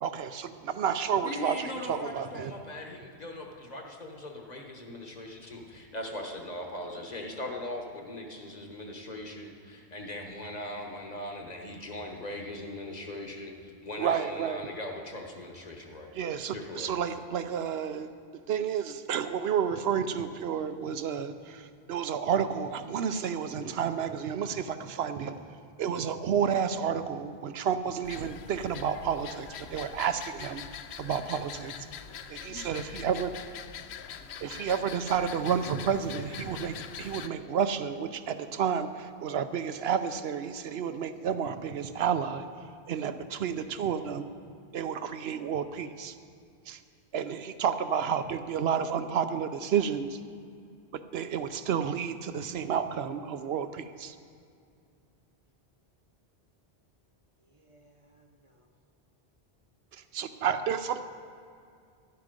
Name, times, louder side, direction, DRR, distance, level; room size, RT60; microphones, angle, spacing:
voice 1, 0.0-2.5 14.0-14.7 16.1-18.1 18.5-25.5 25.8-30.6 31.0-31.7 32.3-33.4 34.4-42.5 42.9-44.2 44.7-46.1 46.7-46.8 47.1-50.2 50.9-54.2 59.9-61.0, right 7 dB, 75° right, 11 dB, 0.8 m, -31 dB
voice 2, 1.2-16.1 16.5-16.9, left 1 dB, 40° left, 2 dB, 1.3 m, -40 dB
sound 1, 28.0-37.3, left 8 dB, 80° left, 0.9 m, -43 dB
voice 3, 57.4-58.7, right 1 dB, 35° right, 3 dB, 0.8 m, -63 dB
11.5 x 11.5 x 5.2 m, 2.3 s
omnidirectional pair, 1.1 m